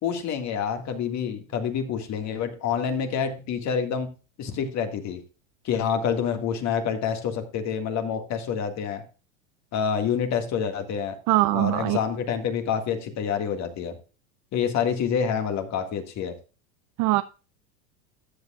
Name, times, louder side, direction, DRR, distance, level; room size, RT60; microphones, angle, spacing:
voice 1, 0.0-4.1 4.4-5.2 5.6-9.0 9.7-11.1 11.5-13.9 14.5-16.3, left 7 dB, 45° left, 6 dB, 1.8 m, -27 dB
voice 2, 11.3-12.0 17.0-17.2, right 18 dB, 50° right, 13 dB, 0.5 m, -21 dB
13.5 x 8.1 x 2.3 m, 0.33 s
hypercardioid pair, 100°, 39 cm